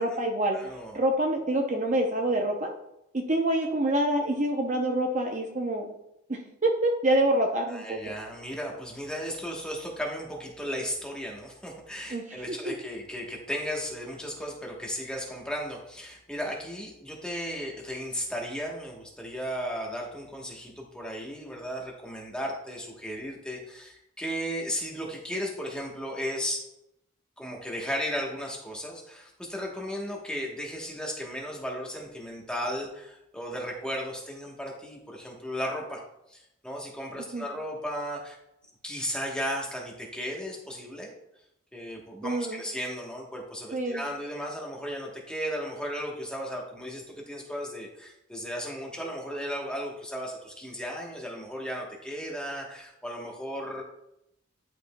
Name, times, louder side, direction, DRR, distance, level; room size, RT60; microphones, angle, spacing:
voice 1, 0.0-0.6 0.9-2.7 3.1-5.9 6.3-8.1 12.1-12.7 37.3-37.5 42.2-42.6 43.7-44.1, right 1 dB, 35° right, 2 dB, 0.6 m, -26 dB
voice 2, 0.5-1.0 7.7-26.6 27.4-36.0 36.3-38.4 38.8-41.1 41.7-53.8, equal, 5° left, -1 dB, 1.1 m, -35 dB
10.5 x 5.0 x 2.2 m, 0.82 s
head